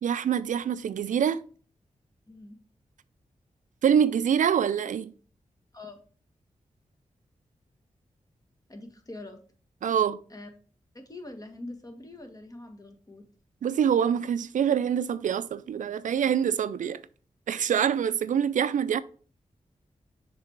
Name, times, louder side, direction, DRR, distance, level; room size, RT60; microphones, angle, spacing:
voice 1, 0.0-1.4 3.8-5.1 9.8-10.2 13.6-17.0 17.5-19.0, right 8 dB, 75° right, 0.4 m, -25 dB
voice 2, 2.3-2.6 5.7-6.0 8.7-9.4 10.3-10.5 10.9-13.2, left 2 dB, 25° left, 1.5 m, -43 dB
6.5 x 3.4 x 4.6 m
cardioid pair, 50°, 13 cm